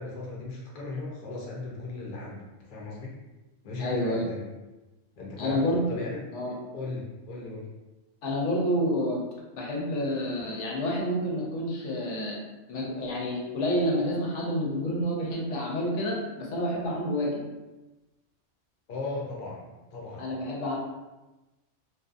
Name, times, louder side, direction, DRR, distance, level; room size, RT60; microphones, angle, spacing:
voice 1, 0.0-3.1 3.6-4.4 5.1-6.3 6.7-7.7 18.9-20.2, left 3 dB, 50° left, -3 dB, 0.6 m, -37 dB
voice 2, 3.8-4.2 5.4-5.9 6.3-6.5 8.2-9.2 9.5-12.4 12.7-17.4 20.2-20.8, equal, 75° left, -3 dB, 0.9 m, -29 dB
2.7 x 2.2 x 2.4 m, 1.1 s
omnidirectional pair, 1.3 m